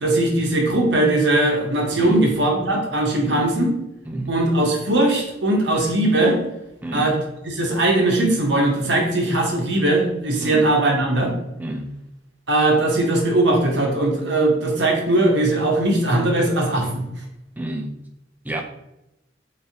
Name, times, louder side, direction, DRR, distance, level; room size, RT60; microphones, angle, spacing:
voice 1, 0.0-3.7 4.3-6.4 6.9-7.1 7.5-11.3 12.5-17.0, right 2 dB, 65° right, 1 dB, 0.8 m, -19 dB
voice 2, 4.1-4.4 6.8-7.2 10.4-10.7 11.6-11.9 17.6-18.0 18.4-18.6, right 1 dB, 10° right, 3 dB, 0.3 m, -29 dB
3.3 x 3.1 x 2.8 m, 0.88 s
head